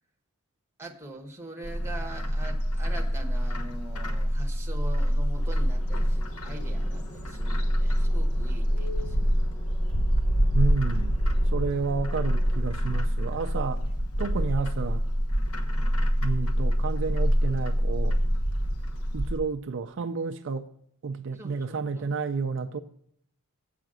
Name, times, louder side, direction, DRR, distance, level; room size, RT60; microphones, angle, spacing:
voice 1, 0.8-9.2 21.3-22.1, right 2 dB, 10° right, 1.1 m, -43 dB
Bird, 1.6-19.4, equal, 70° left, 1.1 m, -26 dB
sound 1, 5.3-12.6, left 1 dB, 15° left, 1.0 m, -47 dB
voice 2, 10.5-13.8 14.2-15.0 16.2-18.2 19.1-20.7 21.0-22.8, right 4 dB, 55° right, 0.4 m, -31 dB
8.0 x 5.7 x 7.4 m
head